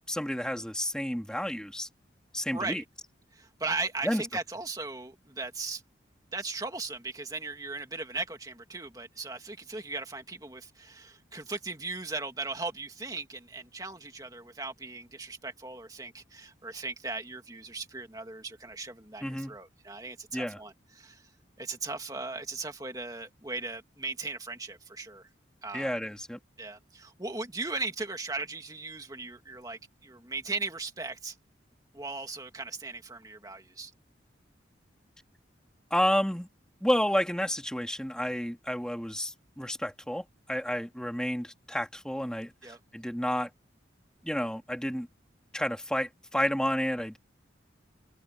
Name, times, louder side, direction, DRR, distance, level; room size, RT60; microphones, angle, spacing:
voice 1, 0.1-1.9 2.3-2.8 4.0-4.2 19.2-19.6 20.3-20.6 25.7-26.4 35.9-36.5 36.8-42.5 42.9-43.5 44.2-45.1 45.5-47.2, equal, 5° left, 2.3 m, -30 dB
voice 2, 2.5-2.8 3.3-5.8 6.3-21.3 21.6-25.3 25.6-25.9 26.6-31.4 31.9-33.9 42.6-42.8, right 3 dB, 20° right, 2.3 m, -38 dB
head